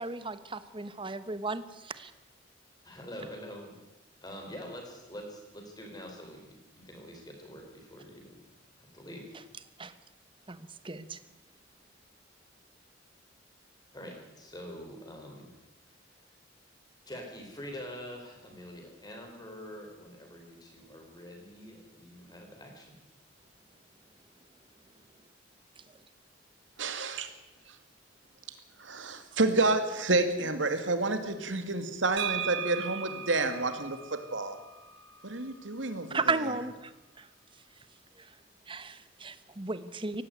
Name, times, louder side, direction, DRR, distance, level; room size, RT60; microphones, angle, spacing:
voice 1, 0.0-2.1 9.8-9.9 10.5-11.2 36.1-36.9 37.2-37.3 38.7-40.2, right 3 dB, 25° right, 13 dB, 1.1 m, -34 dB
voice 2, 2.8-3.7 4.2-8.4 8.8-9.3 13.9-15.5 17.1-23.0, equal, 20° left, 2 dB, 4.9 m, -45 dB
voice 3, 26.8-27.3 28.8-34.6 35.2-36.4, right 2 dB, 90° right, 8 dB, 2.4 m, -29 dB
sound 1, 32.2-35.9, right 8 dB, 70° right, 1.7 m, -38 dB
18.0 x 15.5 x 9.3 m, 1.0 s
head